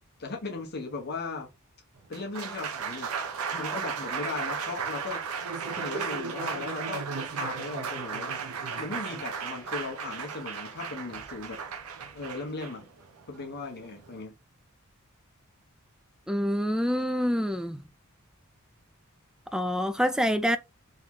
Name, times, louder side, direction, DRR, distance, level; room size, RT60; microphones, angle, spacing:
voice 1, 0.2-1.5 2.1-3.1 3.5-5.2 5.7-8.4 8.8-11.6 12.1-12.9 13.3-14.3, left 3 dB, 50° left, 1.1 m, -37 dB
Applause, 1.9-14.2, right 6 dB, 85° right, 0.8 m, -35 dB
voice 2, 16.3-17.8 19.5-20.6, equal, 5° right, 0.4 m, -26 dB
3.8 x 3.1 x 3.7 m
head